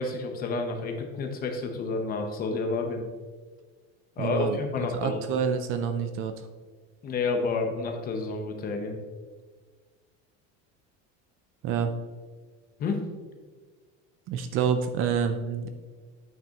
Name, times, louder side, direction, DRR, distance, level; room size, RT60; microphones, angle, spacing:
voice 1, 0.0-3.0 4.2-5.2 7.0-9.0 12.8-13.0, left 3 dB, 30° left, 4 dB, 0.8 m, -30 dB
voice 2, 4.2-4.6 4.9-6.3 11.6-11.9 14.3-15.7, right 7 dB, 40° right, 8 dB, 0.5 m, -27 dB
9.1 x 5.9 x 2.9 m, 1.4 s
cardioid pair, 165°, 31 cm